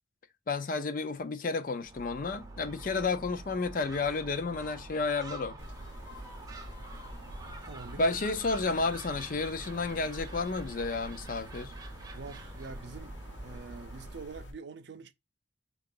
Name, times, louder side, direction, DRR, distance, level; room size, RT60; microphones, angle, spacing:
voice 1, 0.5-5.6 8.0-11.7, left 3 dB, 50° left, 0.5 m, -31 dB
Gull seagull, 1.8-14.3, right 2 dB, 20° right, 0.6 m, -46 dB
sound 1, 5.6-14.5, equal, 80° left, 0.9 m, -47 dB
voice 2, 7.6-8.2 12.1-15.1, right 4 dB, 70° right, 0.5 m, -45 dB
3.8 x 2.4 x 3.7 m
head